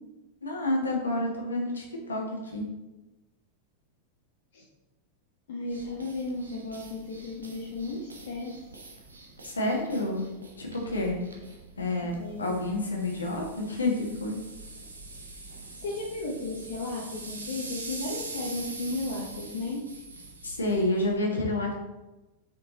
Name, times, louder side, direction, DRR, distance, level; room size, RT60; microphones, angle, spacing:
voice 1, 0.4-2.7 9.4-10.3 10.6-11.2 11.8-12.1 12.4-14.4 20.4-21.7, left 2 dB, 75° left, -1 dB, 1.6 m, -29 dB
voice 2, 5.5-8.6 12.2-12.5 15.8-19.8, left 2 dB, 60° left, -3 dB, 1.0 m, -34 dB
sound 1, 5.6-21.2, right 3 dB, 75° right, 1.0 m, -44 dB
6.1 x 4.6 x 3.9 m, 1.0 s
figure-of-eight pair, 90°, 0 cm